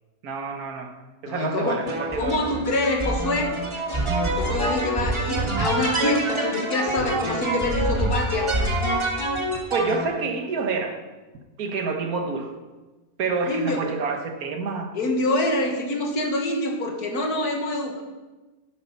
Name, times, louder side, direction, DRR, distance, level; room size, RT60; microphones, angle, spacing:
voice 1, 0.2-1.0 1.2-2.4 9.7-11.0 11.6-12.5 13.2-14.9, right 4 dB, 65° right, 5 dB, 1.6 m, -28 dB
voice 2, 1.2-1.8 2.2-3.5 4.4-8.5 13.4-13.8 14.9-18.0, left 2 dB, 70° left, 2 dB, 2.0 m, -25 dB
sound 1, 1.9-10.1, right 1 dB, 20° right, 1.5 m, -26 dB
10.5 x 8.3 x 5.4 m, 1.2 s
omnidirectional pair, 1.7 m